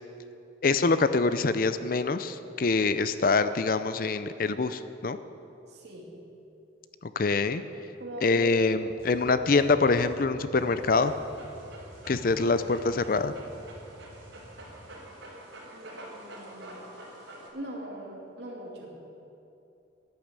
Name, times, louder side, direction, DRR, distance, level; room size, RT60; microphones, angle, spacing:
voice 1, 0.6-5.2 7.0-7.6 8.2-11.1 12.1-13.3, left 3 dB, 50° left, 12 dB, 0.5 m, -25 dB
voice 2, 5.7-6.1 8.0-8.5 9.1-9.3 15.7-16.9 17.5-18.9, right 1 dB, 60° right, -2 dB, 2.7 m, -41 dB
sound 1, 8.7-14.8, equal, 35° right, 4.2 m, -49 dB
Dog, 10.7-17.5, right 1 dB, 85° right, 4.0 m, -47 dB
11.5 x 10.5 x 8.1 m, 2.7 s
head